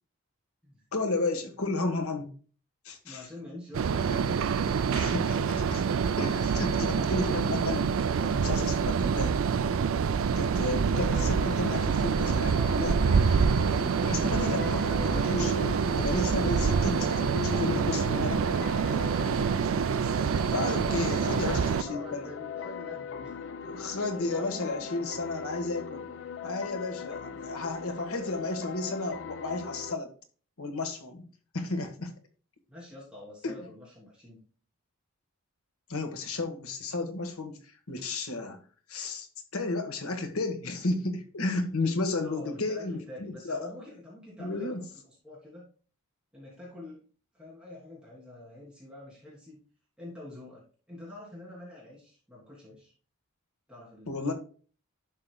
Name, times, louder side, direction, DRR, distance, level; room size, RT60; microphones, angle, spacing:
voice 1, 0.9-2.3 2.8-3.2 4.1-4.3 4.9-5.8 6.2-7.9 8.2-9.4 10.3-13.0 14.0-15.6 16.0-19.1 20.5-22.2 23.6-26.1 26.4-30.1 30.6-31.2 31.5-32.1 33.4-33.5 35.9-37.6 37.9-38.6 38.9-39.3 39.5-43.7 44.4-44.8 54.1-54.3, left 2 dB, 75° left, 5 dB, 1.5 m, -33 dB
voice 2, 3.0-4.4 20.6-23.4 24.1-24.9 27.0-27.7 28.2-28.3 32.7-34.4 42.2-45.7 46.3-47.0 47.3-49.6 50.0-52.9 53.7-54.3, left 1 dB, 5° right, -6 dB, 3.0 m, -46 dB
sound 1, 3.7-21.8, right 6 dB, 65° right, 0.4 m, -26 dB
sound 2, 10.9-29.9, left 5 dB, 55° left, 0.5 m, -39 dB
10.5 x 6.7 x 2.2 m, 0.40 s
head